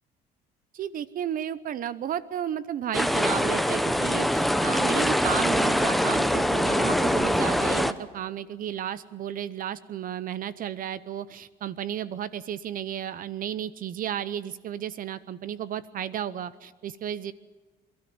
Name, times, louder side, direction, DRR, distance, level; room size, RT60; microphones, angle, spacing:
voice 1, 0.7-17.3, right 10 dB, 55° right, 16 dB, 0.8 m, -33 dB
sound 1, 2.9-7.9, equal, ahead, 0.9 m, -23 dB
28.0 x 13.0 x 9.5 m, 1.3 s
cardioid pair, 110°, 17 cm